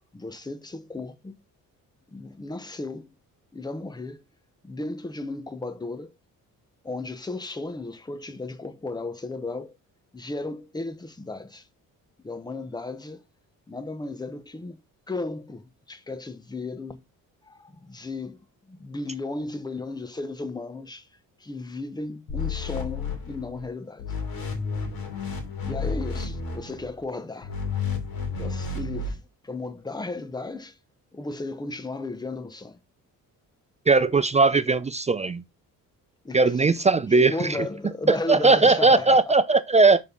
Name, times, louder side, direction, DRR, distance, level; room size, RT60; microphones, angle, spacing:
voice 1, 0.1-1.4 2.1-3.1 3.5-4.2 4.6-6.1 6.8-9.7 10.1-11.6 12.2-13.2 13.7-14.8 15.1-17.0 17.5-18.4 18.7-21.1 21.4-24.0 25.6-27.5 28.4-30.7 31.1-32.8 36.2-36.8 37.3-39.4, left 2 dB, 10° left, 0.9 m, -35 dB
sound 1, 22.3-23.7 24.0-26.9 27.4-29.1, left 4 dB, 85° left, 2.8 m, -31 dB
voice 2, 33.9-35.4 36.3-37.7 38.1-40.0, right 3 dB, 20° right, 0.4 m, -19 dB
6.5 x 5.4 x 3.6 m
cardioid pair, 110°, 35 cm